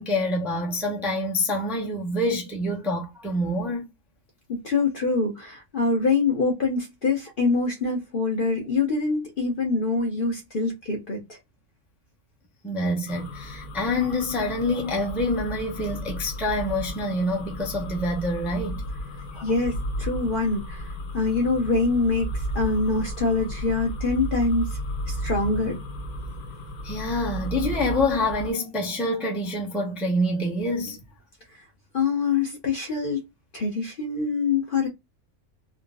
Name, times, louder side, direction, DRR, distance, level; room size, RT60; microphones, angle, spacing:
voice 1, 0.0-3.8 12.6-18.8 19.3-19.4 26.8-31.0, left 1 dB, ahead, 0.5 m, -26 dB
voice 2, 4.6-11.4 19.4-24.7 25.1-25.8 31.9-33.2 33.5-34.9, left 3 dB, 45° left, 0.8 m, -25 dB
sound 1, 13.1-28.5, equal, 80° left, 1.3 m, -34 dB
3.8 x 2.1 x 2.2 m
omnidirectional pair, 1.6 m